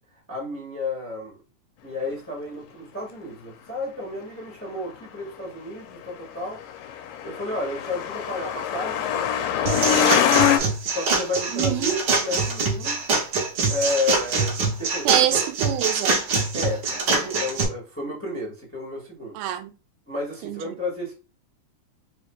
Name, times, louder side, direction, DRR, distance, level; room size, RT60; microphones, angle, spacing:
voice 1, 0.3-1.4 1.8-6.6 7.2-10.4 10.9-13.0 13.7-15.4 16.5-19.4 20.1-21.1, left 2 dB, 10° left, 0.8 m, -32 dB
Truck, 6.5-10.6, left 9 dB, 85° left, 2.2 m, -23 dB
sound 1, 9.7-17.6, right 4 dB, 65° right, 1.1 m, -24 dB
voice 2, 11.5-12.0 15.1-16.3 19.3-19.7 20.4-20.8, right 13 dB, 85° right, 2.1 m, -25 dB
4.8 x 3.2 x 2.3 m
omnidirectional pair, 3.6 m